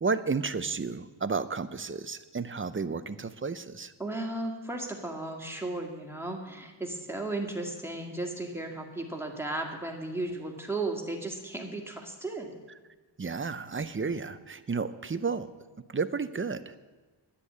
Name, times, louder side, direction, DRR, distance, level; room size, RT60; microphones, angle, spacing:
voice 1, 0.0-3.9 13.2-15.5 15.9-16.8, right 4 dB, 25° right, 13 dB, 0.6 m, -32 dB
voice 2, 4.0-12.5, right 2 dB, 5° right, 1 dB, 2.0 m, -35 dB
11.0 x 9.9 x 8.6 m, 1.3 s
wide cardioid pair, 120°, 46 cm